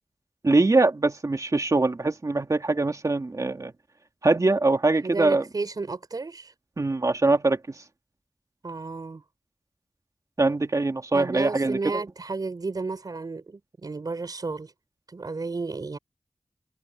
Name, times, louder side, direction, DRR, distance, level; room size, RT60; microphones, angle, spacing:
voice 1, 0.4-3.7 4.2-5.4 6.8-7.8 10.4-12.0, right 2 dB, 55° right, 2.3 m, -23 dB
voice 2, 5.0-6.5 8.6-9.2 11.1-14.7 15.1-16.0, right 3 dB, 80° right, 4.4 m, -32 dB
wide cardioid pair, 55°, 7 cm